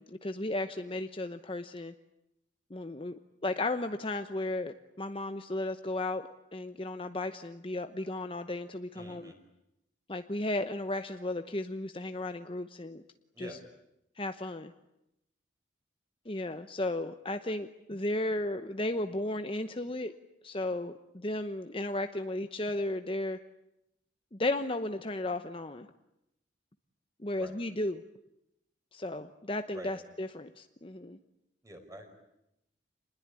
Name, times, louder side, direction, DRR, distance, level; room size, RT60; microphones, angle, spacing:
voice 1, 0.0-1.9 2.7-9.3 10.1-13.0 13.4-13.6 14.2-14.7 16.3-20.1 20.4-23.4 24.3-25.9 27.2-28.0 28.9-31.2, left 2 dB, 30° left, 8 dB, 0.9 m, -34 dB
voice 2, 8.9-9.4 13.3-13.6 27.2-27.6 29.7-29.9 31.6-32.1, right 1 dB, 15° right, 5 dB, 5.0 m, -47 dB
27.5 x 21.0 x 9.8 m, 0.86 s
head